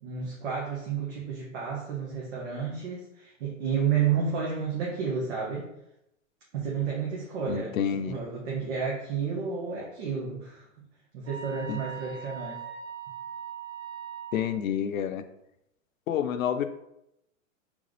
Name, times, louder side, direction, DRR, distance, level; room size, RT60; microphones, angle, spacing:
voice 1, 0.0-5.7 6.5-10.9 11.1-12.6, right 6 dB, 55° right, -4 dB, 1.3 m, -31 dB
voice 2, 7.5-8.2 11.7-11.8 14.3-15.2 16.1-16.6, left 8 dB, 85° left, 9 dB, 0.6 m, -29 dB
sound 1, 11.3-14.5, right 8 dB, 15° right, 1.1 m, -40 dB
3.8 x 3.5 x 3.2 m, 0.82 s
hypercardioid pair, 125°, 40 cm